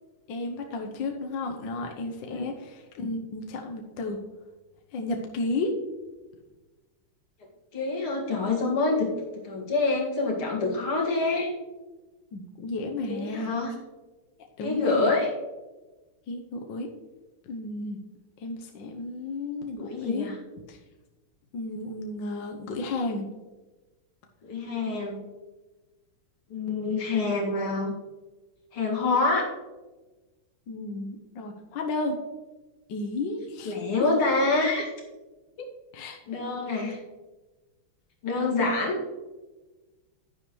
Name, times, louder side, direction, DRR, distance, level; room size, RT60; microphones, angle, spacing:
voice 1, 0.3-4.2 4.9-5.8 12.3-13.5 14.6-15.1 16.3-16.9 17.5-18.0 18.4-20.3 20.7-20.8 21.5-23.3 30.7-32.2 32.9-33.7 34.0-34.1 35.6-35.7 35.9-36.2, left 2 dB, 65° left, 3 dB, 1.5 m, -33 dB
voice 2, 7.7-9.1 9.4-11.5 13.1-13.7 14.6-15.3 19.8-20.4 24.4-25.2 26.5-27.9 28.7-29.5 33.6-34.9 36.3-37.0 38.2-39.0, left 3 dB, 80° left, -2 dB, 3.1 m, -26 dB
11.0 x 10.5 x 3.2 m, 1.2 s
omnidirectional pair, 2.4 m